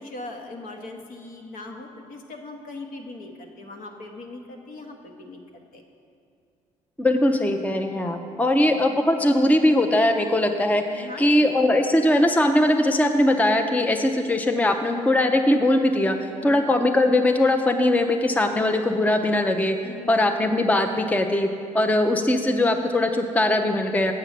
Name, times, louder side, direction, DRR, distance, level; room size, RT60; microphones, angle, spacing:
voice 1, 0.0-5.4 5.7-5.8 8.6-8.8 10.9-11.6 16.4-16.7 18.4-18.6 19.8-20.4, left 2 dB, 60° left, 3 dB, 1.1 m, -40 dB
voice 2, 7.0-16.2 16.4-19.8 20.1-21.5 21.7-24.1, left 1 dB, 10° left, 5 dB, 0.6 m, -20 dB
7.5 x 6.8 x 5.8 m, 2.4 s
hypercardioid pair, 55°, 16 cm